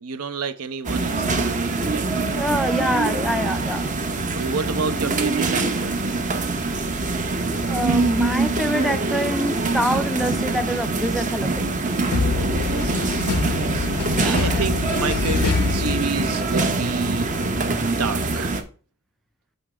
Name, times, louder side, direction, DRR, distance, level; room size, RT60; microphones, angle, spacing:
voice 1, 0.0-2.4 4.3-6.2 12.3-13.9 14.2-17.3 17.9-18.6, right 5 dB, 75° right, 0.7 m, -30 dB
sound 1, 0.8-18.6, right 3 dB, 35° right, 0.7 m, -24 dB
voice 2, 2.3-3.9 7.7-11.8 14.1-14.7, equal, ahead, 0.3 m, -26 dB
sound 2, 12.1-16.6, left 4 dB, 80° left, 0.5 m, -25 dB
7.1 x 3.2 x 4.8 m
head